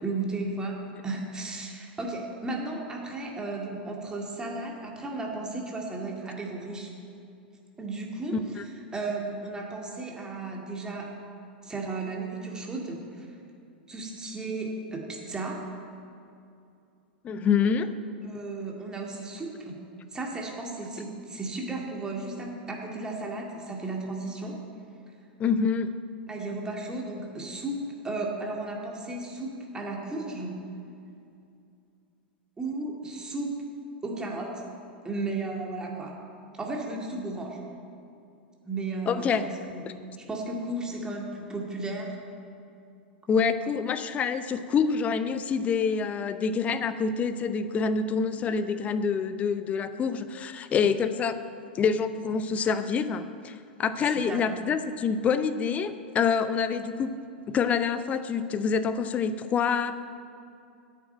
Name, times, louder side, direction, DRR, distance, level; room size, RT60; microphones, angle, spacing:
voice 1, 0.0-6.9 7.8-8.6 8.9-11.2 11.6-13.3 13.9-15.7 18.2-19.8 20.1-24.6 26.3-30.6 32.6-33.6 34.0-34.6 35.0-36.3 36.6-37.6 38.7-42.1 48.4-48.6 54.1-54.4, right 2 dB, 15° right, -1 dB, 2.0 m, -34 dB
voice 2, 17.2-17.9 25.4-25.9 39.1-39.4 43.3-51.4 51.7-57.1 57.5-59.9, left 6 dB, 25° left, 12 dB, 0.6 m, -26 dB
9.6 x 7.2 x 8.5 m, 2.5 s
figure-of-eight pair, 95°, 6 cm